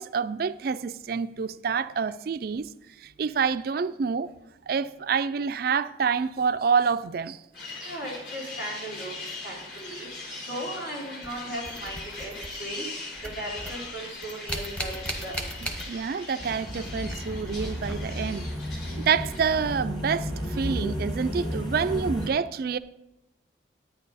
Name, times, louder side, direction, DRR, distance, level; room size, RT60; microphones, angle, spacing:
voice 1, 0.0-2.7 3.0-4.3 4.7-7.4 7.8-7.9 15.9-18.5 19.0-22.8, right 6 dB, 50° right, 0.3 m, -27 dB
sound 1, 7.5-19.4, left 3 dB, 60° left, 3.7 m, -40 dB
voice 2, 7.8-10.1 10.5-12.3 12.6-12.8 13.2-15.5, right 1 dB, 75° left, 4.2 m, -37 dB
sound 2, 11.2-12.9 13.2-16.3 16.6-18.4 20.3-20.4 21.2-21.4, right 1 dB, 5° left, 0.8 m, -38 dB
sound 3, 16.4-22.3, equal, 25° left, 1.4 m, -33 dB
10.5 x 9.3 x 4.1 m
head